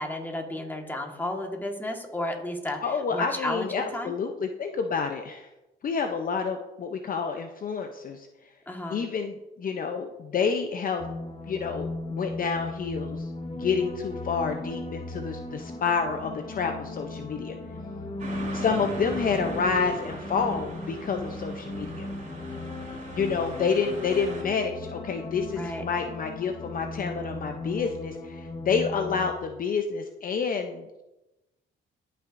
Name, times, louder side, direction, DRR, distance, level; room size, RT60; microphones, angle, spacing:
voice 1, 0.0-2.8 3.1-4.1 8.7-9.0 25.6-25.8, left 1 dB, 10° left, 2 dB, 1.5 m, -32 dB
voice 2, 2.8-5.5 5.8-8.3 8.9-11.1 11.5-17.6 18.5-22.1 23.1-31.0, left 5 dB, 45° left, 5 dB, 0.6 m, -29 dB
sound 1, 11.0-29.3, left 2 dB, 25° left, 1.0 m, -37 dB
sound 2, 18.2-24.4, right 2 dB, 40° right, 2.8 m, -40 dB
14.0 x 5.8 x 2.6 m, 1.0 s
cardioid pair, 90°, 20 cm